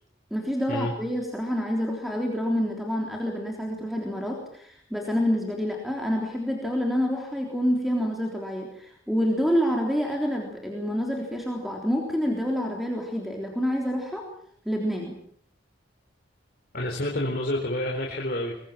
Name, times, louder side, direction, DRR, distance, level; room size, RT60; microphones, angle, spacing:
voice 1, 0.3-14.2 14.6-15.2, equal, ahead, 0 dB, 3.6 m, -27 dB
voice 2, 16.7-18.6, left 1 dB, 50° left, -1 dB, 4.2 m, -28 dB
23.5 x 22.0 x 7.5 m, 0.63 s
head